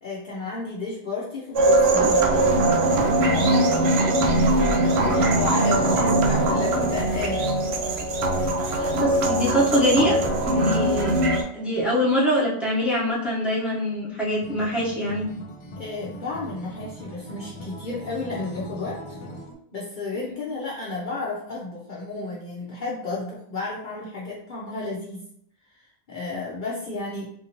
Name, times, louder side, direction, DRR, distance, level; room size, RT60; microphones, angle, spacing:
voice 1, 0.0-2.5 3.2-3.8 5.1-7.5 8.5-8.9 15.8-19.2 19.7-25.2 25.7-25.8 26.1-27.3, left 3 dB, 50° left, -5 dB, 0.7 m, -32 dB
sound 1, 1.5-11.4, right 2 dB, 70° right, 0.8 m, -21 dB
voice 2, 8.8-11.1 11.5-15.3 20.1-20.3, equal, ahead, -7 dB, 0.9 m, -24 dB
Acoustic guitar, 14.4-19.5, equal, 90° left, 0.9 m, -40 dB
3.6 x 2.7 x 2.9 m, 0.69 s
omnidirectional pair, 1.2 m